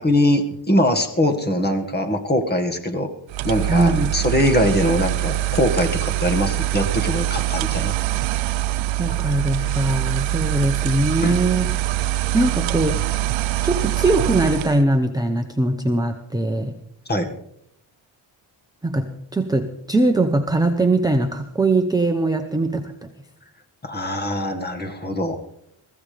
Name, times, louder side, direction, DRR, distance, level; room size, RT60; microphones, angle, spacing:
voice 1, 0.0-3.1 3.4-7.9 11.2-11.4 17.1-17.4 23.8-25.4, left 1 dB, 20° left, 5 dB, 1.9 m, -22 dB
sound 1, 3.3-14.8, right 14 dB, 70° right, 0.6 m, -24 dB
voice 2, 3.7-4.2 9.0-11.7 12.3-13.1 13.6-16.8 18.8-23.1, right 2 dB, 10° right, 4 dB, 0.8 m, -21 dB
23.0 x 15.0 x 3.5 m, 0.73 s
cardioid pair, 135°, 49 cm